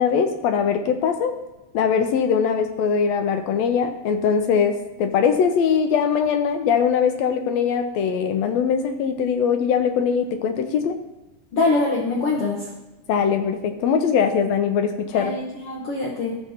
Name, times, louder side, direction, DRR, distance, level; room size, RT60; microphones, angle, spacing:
voice 1, 0.0-1.3 1.7-11.0 13.1-15.3, left 7 dB, 80° left, 6 dB, 1.6 m, -21 dB
voice 2, 11.5-12.7 15.1-16.4, left 3 dB, 60° left, -3 dB, 1.7 m, -24 dB
13.5 x 7.1 x 2.8 m, 1.0 s
omnidirectional pair, 3.5 m